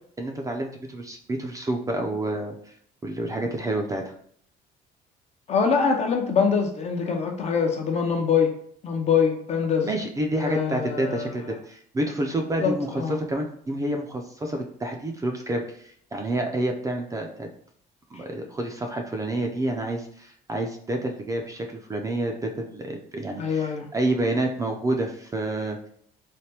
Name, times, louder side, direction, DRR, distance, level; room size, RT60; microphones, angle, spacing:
voice 1, 0.2-2.7 3.0-4.1 9.8-17.5 18.1-25.9, right 1 dB, 20° right, 2 dB, 0.4 m, -29 dB
voice 2, 5.5-9.9 10.4-11.3 12.6-13.2 23.4-23.9, left 6 dB, 40° left, 3 dB, 0.6 m, -24 dB
3.3 x 2.1 x 2.8 m, 0.62 s
cardioid pair, 110°, 17 cm